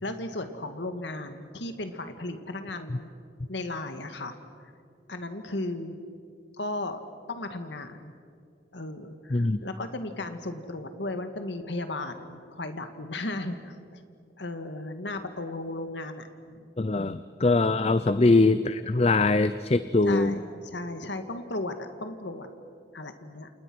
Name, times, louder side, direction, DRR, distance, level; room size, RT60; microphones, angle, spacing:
voice 1, 0.0-3.1 3.5-4.4 5.1-6.0 6.5-7.0 7.3-8.1 8.7-14.0 14.4-16.3 16.9-17.1 18.1-18.3 20.0-22.5 22.9-23.5, left 2 dB, 80° left, 7 dB, 1.8 m, -35 dB
voice 2, 16.8-20.4, left 3 dB, 35° left, 13 dB, 0.6 m, -22 dB
29.5 x 28.0 x 6.2 m, 2.3 s
head